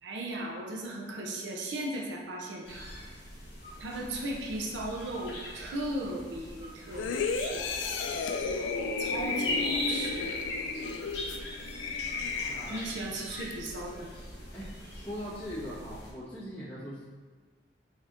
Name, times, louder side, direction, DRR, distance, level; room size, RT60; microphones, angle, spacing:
voice 1, 0.0-2.9 3.8-7.6 9.0-10.3 12.7-14.1, right 1 dB, 75° right, -1 dB, 0.5 m, -37 dB
sound 1, 2.6-16.1, left 1 dB, 60° left, 0.8 m, -41 dB
sound 2, 7.0-13.1 13.5-13.7, left 4 dB, 85° left, 0.3 m, -33 dB
voice 2, 12.5-12.8 14.5-17.0, equal, 5° left, -12 dB, 1.3 m, -40 dB
3.9 x 3.4 x 2.5 m, 1.4 s
head